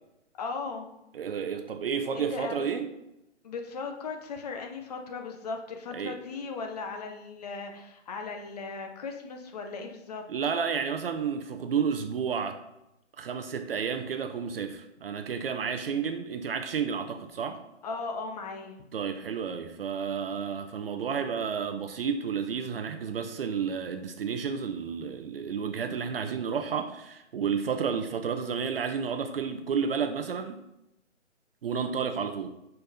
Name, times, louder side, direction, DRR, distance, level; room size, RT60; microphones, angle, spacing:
voice 1, 0.4-0.9 2.1-2.7 3.4-10.2 17.8-18.8, left 4 dB, 35° left, 0.8 m, -37 dB
voice 2, 1.1-2.9 5.9-6.2 10.3-12.6 13.2-17.6 18.9-30.6 31.6-32.6, right 6 dB, 55° right, 0.6 m, -31 dB
5.3 x 4.4 x 5.5 m
hypercardioid pair, 150°, 35 cm